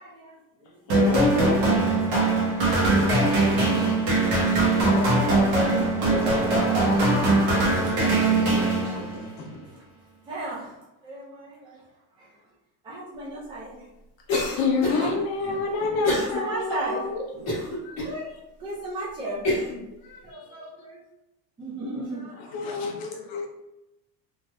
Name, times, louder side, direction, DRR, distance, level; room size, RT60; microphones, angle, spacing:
voice 1, 0.0-1.0 1.3-1.7 5.6-6.3 6.6-8.1 8.5-8.9 10.3-11.8 12.2-12.3 12.8-13.9 14.9-17.0 17.3-18.3 18.6-19.4 20.2-21.0 21.6-23.3, right 2 dB, 10° right, -6 dB, 0.4 m, -38 dB
voice 2, 0.9-1.6 14.6-17.2 17.8-18.0 20.1-20.2 21.9-22.0 22.4-23.5, left 4 dB, 50° left, -1 dB, 0.8 m, -28 dB
sound 1, 0.9-9.3, right 2 dB, 55° right, 1.1 m, -21 dB
voice 3, 3.0-7.1 7.9-9.6, left 3 dB, 70° left, -3 dB, 1.1 m, -36 dB
Cough, 14.3-15.1 16.0-16.4 16.8-16.9 17.5-18.1 18.7-18.8 19.4-19.8, left 2 dB, 35° left, 1.2 m, -26 dB
3.3 x 2.6 x 2.2 m, 0.92 s
cardioid pair, 160°, 47 cm